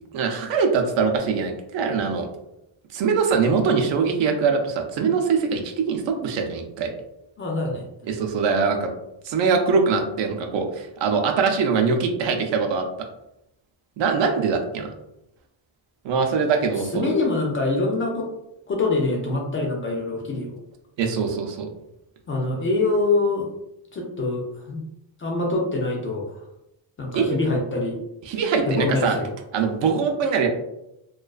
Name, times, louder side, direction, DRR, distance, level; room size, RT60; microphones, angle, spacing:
voice 1, 0.1-2.3 2.9-6.9 8.1-8.9 9.2-12.9 14.0-14.9 16.0-17.1 21.0-21.7 27.1-27.4 28.3-29.2 29.5-30.5, right 5 dB, 70° right, 4 dB, 0.6 m, -22 dB
voice 2, 7.4-7.8 16.8-18.3 18.7-20.6 22.3-23.5 23.9-24.8 25.2-26.4 27.0-28.0 28.7-29.3, left 2 dB, 30° left, 0 dB, 0.4 m, -24 dB
2.3 x 2.3 x 2.3 m, 0.86 s
cardioid pair, 130°, 46 cm